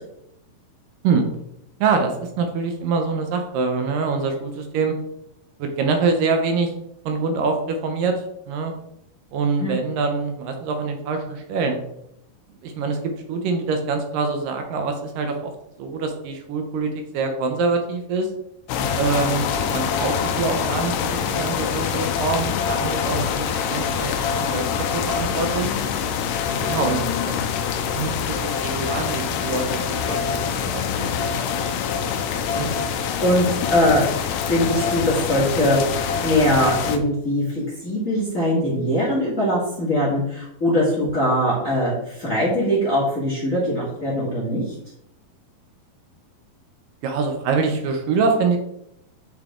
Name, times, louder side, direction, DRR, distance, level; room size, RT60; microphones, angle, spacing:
voice 1, 1.8-5.0 5.6-6.7 7.1-8.7 9.3-11.8 12.6-13.0 13.3-15.5 15.8-18.3 18.9-24.7 24.9-25.7 26.6-27.3 27.9-31.5 47.0-48.6, right 4 dB, 75° right, 4 dB, 2.4 m, -25 dB
sound 1, 18.7-37.0, left 7 dB, 80° left, 2.1 m, -25 dB
voice 2, 32.5-34.0 34.5-44.7, equal, 30° left, -6 dB, 1.8 m, -22 dB
8.8 x 4.1 x 3.7 m, 0.78 s
omnidirectional pair, 4.0 m